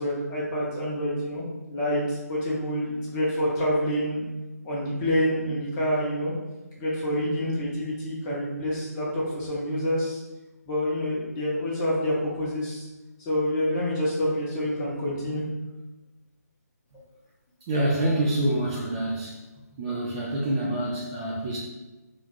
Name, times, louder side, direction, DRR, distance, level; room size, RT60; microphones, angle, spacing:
voice 1, 0.0-4.2 4.6-6.3 6.8-10.2 10.7-12.9 13.3-15.4, equal, 20° left, -6 dB, 0.9 m, -27 dB
voice 2, 17.7-19.4 19.8-21.6, right 1 dB, 20° right, -4 dB, 0.5 m, -26 dB
3.3 x 2.4 x 4.0 m, 1.1 s
figure-of-eight pair, 145°, 9 cm